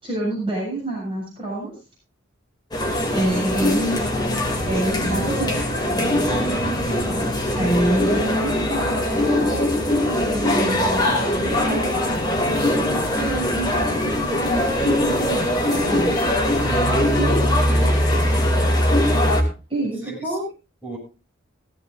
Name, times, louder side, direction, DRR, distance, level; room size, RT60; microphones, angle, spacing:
voice 1, 0.0-1.8 3.1-4.0 4.7-6.2 7.6-9.7 10.1-16.1 17.2-17.4 19.7-20.4, right 1 dB, 25° right, -5 dB, 7.5 m, -27 dB
sound 1, 2.7-19.4, left 1 dB, 20° left, 2.8 m, -21 dB
voice 2, 6.8-7.2 16.5-17.2 17.7-18.0 20.0-20.4 20.8-21.0, right 2 dB, 10° right, -3 dB, 7.3 m, -33 dB
17.0 x 15.5 x 2.6 m, 0.31 s
head